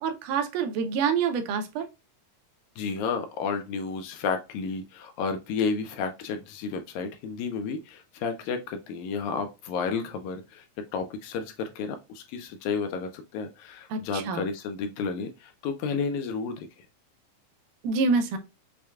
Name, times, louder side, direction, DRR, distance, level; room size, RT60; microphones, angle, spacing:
voice 1, 0.0-1.9 13.9-14.5 17.8-18.4, right 5 dB, 90° right, 6 dB, 2.2 m, -26 dB
voice 2, 2.8-10.7 10.9-16.9, left 5 dB, 80° left, 6 dB, 1.8 m, -32 dB
6.3 x 2.2 x 2.3 m, 0.26 s
omnidirectional pair, 3.6 m